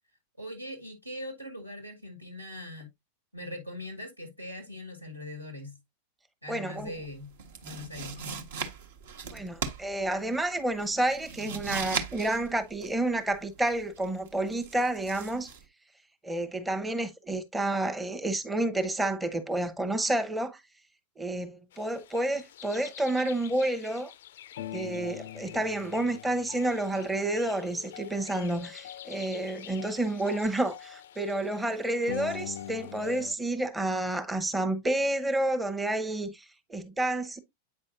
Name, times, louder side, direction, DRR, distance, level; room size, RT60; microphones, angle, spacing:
voice 1, 0.4-2.9 3.3-5.8 6.4-7.3 7.6-8.4, left 1 dB, 90° right, 2.0 m, -41 dB
voice 2, 6.5-6.9 9.3-15.5 16.2-20.6 21.2-24.1 24.7-37.4, right 1 dB, 10° right, 0.8 m, -30 dB
sound 1, 6.8-15.6, right 6 dB, 55° right, 1.0 m, -39 dB
sound 2, 21.7-33.3, left 11 dB, 60° left, 0.3 m, -43 dB
8.3 x 5.4 x 2.6 m
figure-of-eight pair, 90°, 0 cm